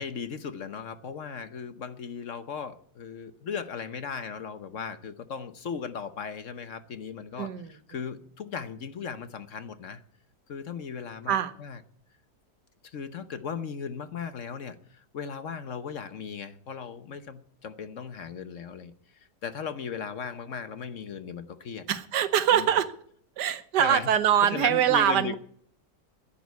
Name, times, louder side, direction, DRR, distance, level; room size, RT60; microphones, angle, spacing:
voice 1, 0.0-10.0 10.5-11.8 12.8-21.9 22.5-22.7 23.8-24.1 24.4-25.3, left 6 dB, 55° left, 11 dB, 1.1 m, -37 dB
voice 2, 7.4-7.7 11.3-11.5 21.9-22.9 23.4-25.4, right 9 dB, 85° right, 12 dB, 1.5 m, -23 dB
10.5 x 10.5 x 9.4 m, 0.62 s
omnidirectional pair, 1.8 m